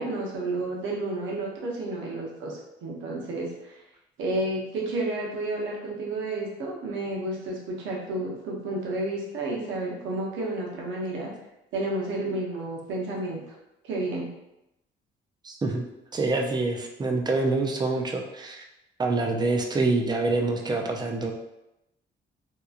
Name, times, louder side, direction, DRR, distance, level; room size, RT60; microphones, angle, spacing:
voice 1, 0.0-3.8 4.2-11.3 11.7-13.4 13.8-14.3, right 2 dB, 75° right, -2 dB, 0.8 m, -31 dB
voice 2, 15.4-15.8 16.1-18.6 19.0-21.3, right 3 dB, 20° right, 2 dB, 0.4 m, -26 dB
2.9 x 2.3 x 2.4 m, 0.89 s
cardioid pair, 90°, 20 cm